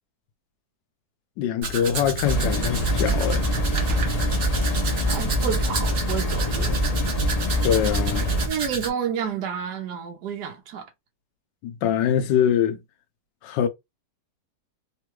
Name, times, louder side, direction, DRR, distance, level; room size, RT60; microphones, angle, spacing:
voice 1, 1.4-3.5 7.6-8.3 11.6-12.8 13.4-13.7, left 9 dB, 85° left, 1.3 m, -23 dB
Domestic sounds home sounds, 1.6-8.9, right 3 dB, 55° right, 1.2 m, -31 dB
sound 1, 2.2-8.5, equal, 65° left, 0.3 m, -24 dB
voice 2, 5.1-7.0 8.4-10.8, right 7 dB, 70° right, 1.3 m, -30 dB
3.7 x 2.2 x 3.0 m
omnidirectional pair, 1.9 m